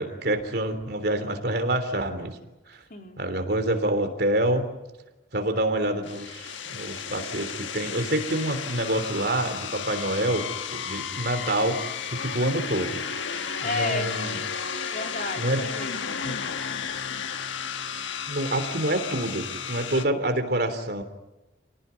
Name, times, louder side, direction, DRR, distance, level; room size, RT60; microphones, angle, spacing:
voice 1, 0.0-2.4 2.7-2.8 3.2-4.7 5.3-13.0 13.3-13.4 13.6-14.4 15.4-15.6 16.2-16.4 18.3-21.0, right 1 dB, 55° right, 7 dB, 3.4 m, -27 dB
sound 1, 6.0-20.0, left 7 dB, 80° left, 1.4 m, -33 dB
voice 2, 13.6-14.1 14.9-16.2, left 2 dB, 45° left, 3 dB, 3.3 m, -32 dB
29.5 x 18.5 x 9.7 m, 1.0 s
head